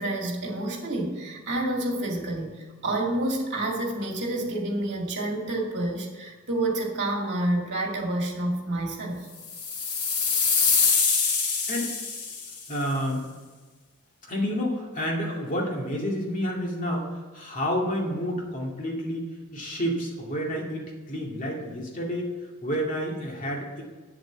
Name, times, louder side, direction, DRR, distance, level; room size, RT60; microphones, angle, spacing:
voice 1, 0.0-2.6 2.8-9.3, right 1 dB, 55° right, 0 dB, 2.3 m, -28 dB
sound 1, 9.4-12.6, left 5 dB, 85° left, 1.9 m, -24 dB
voice 2, 12.7-13.3 14.3-22.3 22.6-23.8, equal, 35° left, -1 dB, 2.2 m, -29 dB
8.5 x 8.0 x 7.3 m, 1.4 s
head